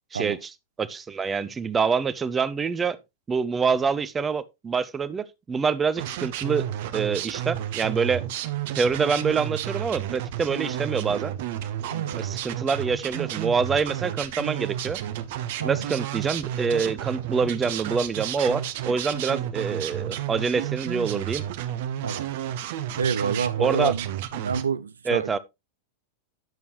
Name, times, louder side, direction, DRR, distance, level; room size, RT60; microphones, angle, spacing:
voice 1, 0.1-0.5 0.8-3.0 3.3-6.7 6.9-8.2 8.7-11.3 12.2-15.0 15.6-21.4 23.6-23.9 25.1-25.4, right 5 dB, 20° right, 0.6 m, -26 dB
sound 1, 6.0-24.6, right 11 dB, 50° right, 0.8 m, -31 dB
voice 2, 11.9-12.3 15.6-15.8 22.0-22.3 23.0-24.1 24.3-25.3, right 6 dB, 70° right, 0.4 m, -28 dB
10.5 x 6.9 x 3.1 m
figure-of-eight pair, 90°, 0 cm